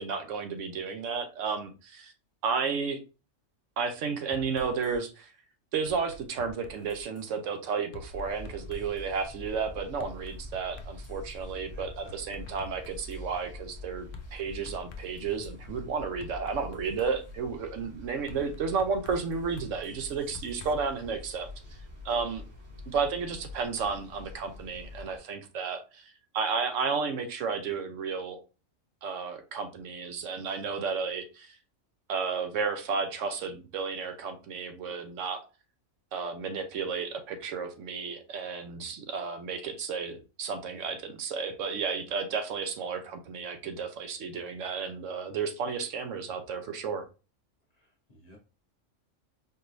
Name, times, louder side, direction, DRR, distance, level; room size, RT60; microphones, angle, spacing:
voice 1, 0.0-2.1 2.4-3.0 3.8-5.3 5.7-21.5 22.0-22.4 22.9-28.4 29.0-31.5 32.1-35.4 36.1-47.0, right 5 dB, 75° right, 1.0 m, -32 dB
sound 1, 4.3-5.0 5.9-7.3 7.9-9.1 10.0-11.3 11.8-13.2 14.1-15.5 16.2-17.4 18.3-20.7, left 2 dB, 65° left, 0.5 m, -48 dB
sound 2, 8.1-25.2, left 2 dB, 55° right, 2.4 m, -45 dB
voice 2, 11.7-12.5 47.8-48.4, left 1 dB, 35° left, 0.9 m, -56 dB
4.4 x 3.1 x 2.5 m
omnidirectional pair, 1.3 m